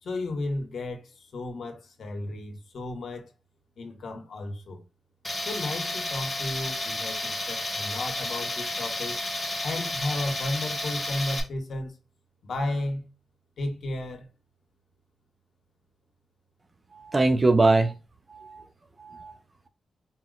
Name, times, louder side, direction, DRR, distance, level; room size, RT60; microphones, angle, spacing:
voice 1, 0.0-3.3 3.8-4.8 5.4-9.2 9.6-11.9 12.4-13.1 13.6-14.3, left 2 dB, 65° left, 0.9 m, -33 dB
Tools, 5.2-11.4, left 1 dB, 10° left, 0.8 m, -32 dB
voice 2, 16.9-17.9 18.3-18.6 19.0-19.3, right 2 dB, 25° right, 0.3 m, -22 dB
4.2 x 2.0 x 3.7 m
wide cardioid pair, 150°, 0 cm